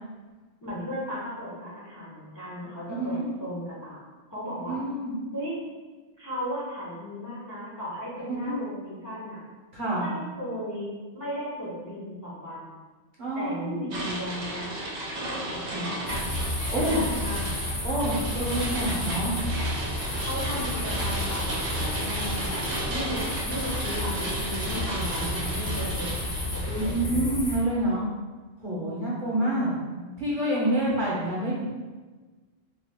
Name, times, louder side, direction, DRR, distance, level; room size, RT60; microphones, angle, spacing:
voice 1, 0.6-4.0 4.3-4.8 5.3-5.6 6.2-9.4 9.9-12.7 13.3-14.7 15.2-16.3 16.7-17.5 20.2-23.2 23.4-27.3 29.3-30.0, equal, 20° left, -8 dB, 0.6 m, -36 dB
voice 2, 2.9-3.3 4.6-5.2 8.3-8.6 9.7-10.1 13.2-13.9 16.7-17.0 17.8-19.4 26.7-28.1 28.6-29.7 30.2-31.7, right 1 dB, 50° right, -6 dB, 0.9 m, -27 dB
sound 1, 13.9-27.0, right 1 dB, 75° right, 0.9 m, -34 dB
sound 2, 16.1-27.6, left 1 dB, 65° left, 1.0 m, -31 dB
2.8 x 2.3 x 3.4 m, 1.3 s
omnidirectional pair, 1.1 m